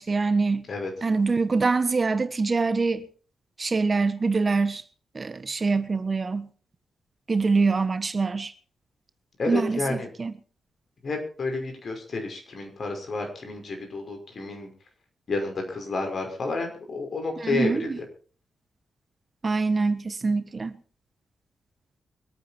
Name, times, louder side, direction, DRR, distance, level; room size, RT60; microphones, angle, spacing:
voice 1, 0.0-0.7 1.0-3.1 3.6-4.8 5.1-6.5 7.3-8.5 9.5-10.3 17.4-18.0 19.4-20.8, right 4 dB, 40° right, 1.3 m, -24 dB
voice 2, 9.4-10.1 11.0-14.7 15.3-17.9, left 3 dB, 55° left, 5.7 m, -30 dB
24.5 x 9.3 x 4.6 m
hypercardioid pair, 40°, 0 cm